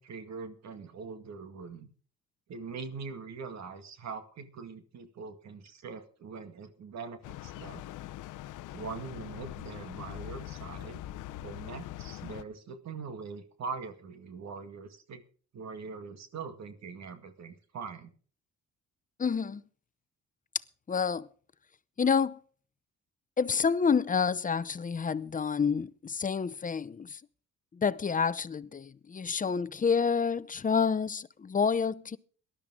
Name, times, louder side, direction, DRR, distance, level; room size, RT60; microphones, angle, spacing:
voice 1, 0.0-1.9 2.5-7.8 8.7-11.0 11.4-15.2 15.5-18.1, right 5 dB, 60° right, 2.1 m, -42 dB
sound 1, 7.2-12.4, left 15 dB, 80° left, 0.7 m, -42 dB
voice 2, 19.2-19.6 20.9-21.3 22.0-22.4 23.4-27.2 27.7-32.2, left 6 dB, 25° left, 0.7 m, -28 dB
18.5 x 12.0 x 3.7 m
cardioid pair, 90°, 30 cm